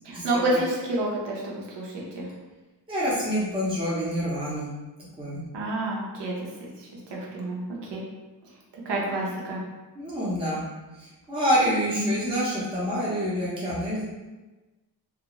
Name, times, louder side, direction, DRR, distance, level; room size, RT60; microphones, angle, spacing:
voice 1, 0.0-2.3 5.5-6.3 6.6-8.0 8.8-9.6 11.9-12.3, right 1 dB, 75° right, -3 dB, 0.8 m, -29 dB
voice 2, 2.9-4.7 5.2-5.4 10.0-10.6 11.0-14.0, equal, 15° right, -8 dB, 0.7 m, -27 dB
2.4 x 2.1 x 2.9 m, 1.2 s
wide cardioid pair, 135°, 42 cm